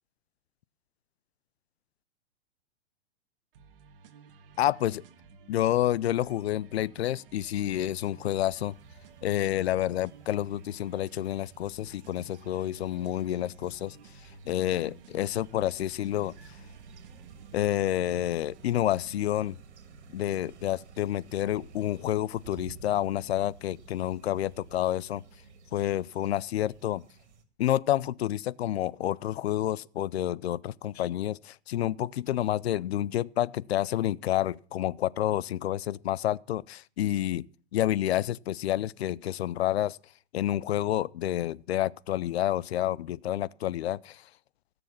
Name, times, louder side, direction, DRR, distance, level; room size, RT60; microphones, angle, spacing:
sound 1, 3.5-19.5, right 4 dB, 55° right, 1.7 m, -54 dB
voice 1, 4.6-5.0 5.5-8.7 9.2-14.0 14.5-16.3 17.5-19.6 20.1-25.2 25.7-27.0 27.6-37.5 37.7-40.0 40.3-44.2, left 13 dB, 65° left, 0.6 m, -29 dB
sound 2, 8.5-27.4, right 5 dB, 80° right, 2.5 m, -53 dB
17.5 x 7.0 x 7.2 m
hypercardioid pair, 160°, 34 cm